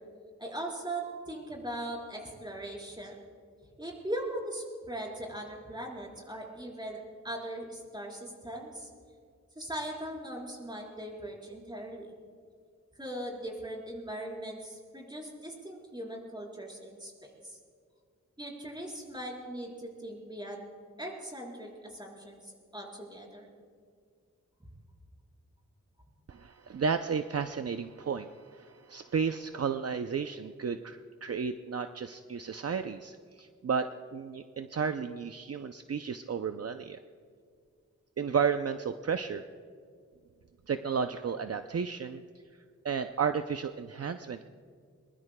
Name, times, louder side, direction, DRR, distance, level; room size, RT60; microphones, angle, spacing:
voice 1, 0.4-3.2 3.8-8.9 9.6-12.1 13.0-17.1 17.4-17.6 18.4-20.7 21.0-23.5, right 1 dB, 15° right, -2 dB, 4.3 m, -40 dB
voice 2, 26.3-37.0 38.2-39.4 40.7-42.2 42.8-44.4, right 6 dB, 60° right, 8 dB, 0.5 m, -33 dB
22.5 x 21.5 x 2.2 m, 2.1 s
wide cardioid pair, 80°, 29 cm